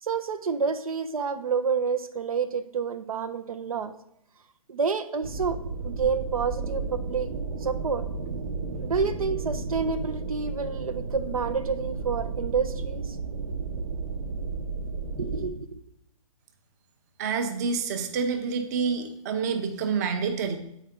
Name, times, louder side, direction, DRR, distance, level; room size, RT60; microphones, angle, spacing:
voice 1, 0.0-3.9 4.7-5.6 5.8-7.3 7.6-8.1 8.8-13.2 15.2-15.8, right 5 dB, 80° right, 9 dB, 0.6 m, -29 dB
sound 1, 5.2-15.5, right 4 dB, 65° right, 1.0 m, -33 dB
voice 2, 17.2-20.6, right 5 dB, 30° right, 6 dB, 0.7 m, -28 dB
8.2 x 4.6 x 3.6 m, 0.78 s
hypercardioid pair, 150°, 18 cm